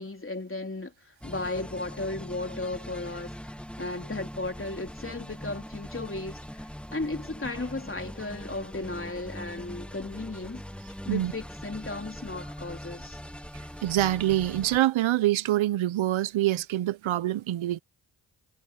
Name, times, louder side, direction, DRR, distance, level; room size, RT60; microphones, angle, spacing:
voice 1, 0.0-3.5 3.8-10.6 11.0-13.2, left 2 dB, 25° left, 3.7 m, -35 dB
sound 1, 1.2-14.8, equal, ahead, 1.4 m, -42 dB
voice 2, 13.8-17.8, right 14 dB, 80° right, 0.8 m, -25 dB
supercardioid pair, 45°, 46 cm